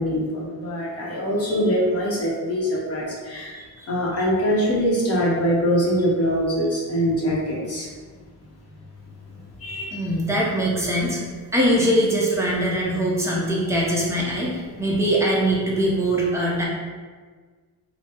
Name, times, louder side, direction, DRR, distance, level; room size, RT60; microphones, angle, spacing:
voice 1, 0.0-3.6 3.9-7.9 9.6-9.9, equal, 40° left, -4 dB, 0.8 m, -23 dB
voice 2, 3.5-3.9 9.9-11.2 11.5-16.6, right 1 dB, 10° right, -5 dB, 0.6 m, -22 dB
3.4 x 2.0 x 4.3 m, 1.5 s
cardioid pair, 160°, 37 cm